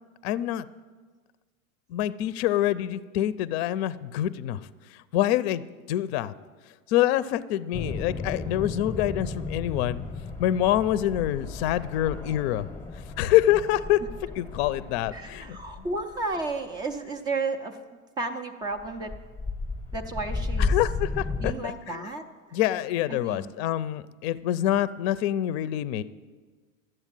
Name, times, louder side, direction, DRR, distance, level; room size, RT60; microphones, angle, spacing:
voice 1, 0.2-0.7 1.9-4.6 4.9-5.6 5.9-6.3 6.9-10.0 10.4-12.7 13.2-14.0 14.4-15.6 20.6-22.1 22.5-26.0, left 13 dB, 50° left, 17 dB, 0.5 m, -26 dB
sound 1, 7.7-16.5 18.8-21.5, left 3 dB, 5° left, 0.8 m, -33 dB
voice 2, 15.1-17.8 18.2-19.1 19.9-20.7 21.4-22.2 23.1-23.5, right 3 dB, 10° right, 6 dB, 0.3 m, -32 dB
12.0 x 7.9 x 9.0 m, 1.4 s
supercardioid pair, 145°, 43 cm